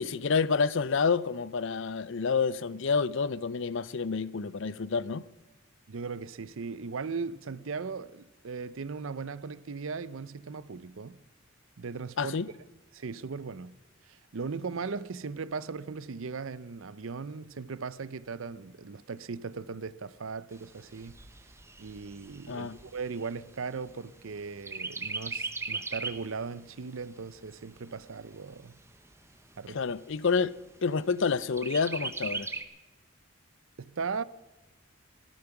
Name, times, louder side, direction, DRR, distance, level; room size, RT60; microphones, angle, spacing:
voice 1, 0.0-5.2 12.2-12.5 22.5-22.8 29.7-30.5 30.8-32.5, left 5 dB, 60° left, 0.6 m, -28 dB
voice 2, 5.9-11.2 11.8-12.4 12.9-13.8 14.1-21.2 21.8-28.8 29.6-29.8 33.8-34.2, right 5 dB, 65° right, 0.6 m, -38 dB
Chirp tweet, 20.5-24.3 24.7-26.3 26.8-26.9 27.2-28.2 28.8-28.9 29.2-29.3 29.8-30.3 31.6-32.6, right 3 dB, 15° right, 0.9 m, -38 dB
16.0 x 13.0 x 5.9 m
head